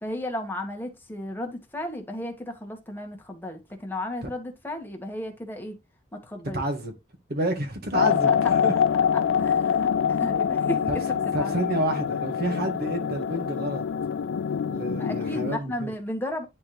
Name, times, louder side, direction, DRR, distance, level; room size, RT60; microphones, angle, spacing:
voice 1, 0.0-5.8 6.1-6.6 8.1-8.4 9.3-11.6 15.0-16.5, left 1 dB, 10° left, 1.8 m, -34 dB
voice 2, 6.5-6.9 7.3-8.7 10.9-11.0 11.3-13.8 14.7-15.9, right 1 dB, 55° right, 1.9 m, -29 dB
sound 1, 7.9-15.6, left 7 dB, 90° left, 0.4 m, -25 dB
10.5 x 4.4 x 3.4 m
head